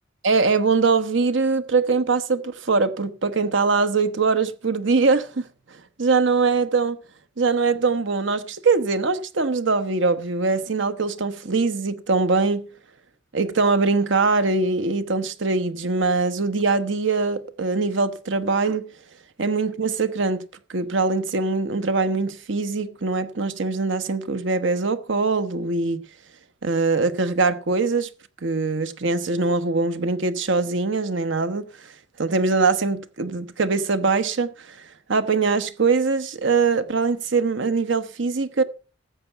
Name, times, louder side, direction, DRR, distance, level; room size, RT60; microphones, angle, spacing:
voice 1, 0.2-5.5 6.0-7.0 7.4-12.7 13.3-18.9 19.4-20.4 20.7-26.0 26.6-28.1 28.4-31.9 32.2-38.6, right 4 dB, 65° right, 1.0 m, -22 dB
13.5 x 8.0 x 5.7 m
head